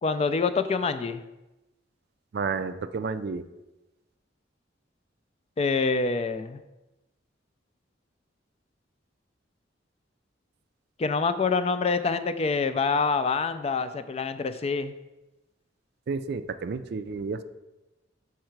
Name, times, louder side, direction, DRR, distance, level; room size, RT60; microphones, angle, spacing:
voice 1, 0.0-1.2 5.6-6.6 11.0-14.9, left 4 dB, 35° left, 11 dB, 0.3 m, -26 dB
voice 2, 2.3-3.4 16.1-17.4, right 4 dB, 60° right, 12 dB, 0.4 m, -31 dB
6.5 x 4.8 x 4.5 m, 1.0 s
head